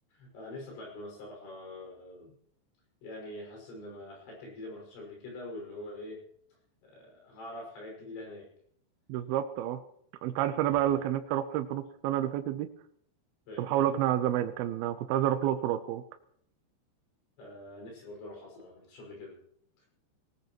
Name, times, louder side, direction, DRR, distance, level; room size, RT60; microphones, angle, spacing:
voice 1, 0.1-2.3 3.0-6.2 6.8-8.5 10.7-11.0 13.5-13.9 17.4-19.3 19.8-19.9, left 1 dB, 80° left, -1 dB, 8.3 m, -44 dB
voice 2, 9.1-9.8 10.2-12.7 13.6-16.0, right 11 dB, 85° right, 9 dB, 2.3 m, -29 dB
19.5 x 19.0 x 3.0 m, 0.67 s
omnidirectional pair, 5.3 m